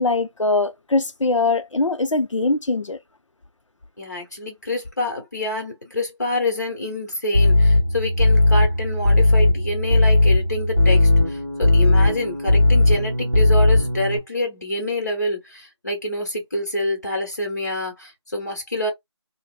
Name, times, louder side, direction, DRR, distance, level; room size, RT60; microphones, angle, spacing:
voice 1, 0.0-3.0, left 3 dB, 85° left, 0.5 m, -21 dB
voice 2, 4.0-18.9, left 1 dB, 35° left, 1.1 m, -27 dB
sound 1, 7.3-14.2, left 2 dB, 15° right, 0.9 m, -17 dB
3.1 x 2.1 x 2.3 m
figure-of-eight pair, 175°, 15 cm